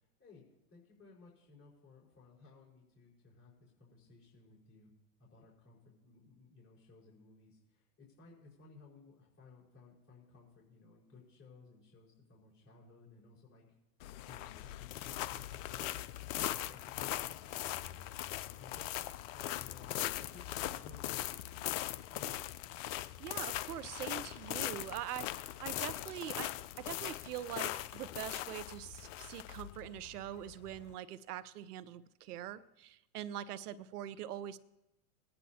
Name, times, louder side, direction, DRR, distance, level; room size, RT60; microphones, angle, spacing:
voice 1, 0.0-4.9 5.2-13.6 14.3-16.0 16.4-18.0 18.4-22.4, left 4 dB, 30° left, -5 dB, 4.9 m, -59 dB
sound 1, 14.0-30.9, left 14 dB, 55° left, 0.7 m, -40 dB
voice 2, 22.9-34.6, right 11 dB, 70° right, 16 dB, 0.8 m, -43 dB
22.0 x 10.0 x 2.8 m, 0.93 s
hypercardioid pair, 100°, 47 cm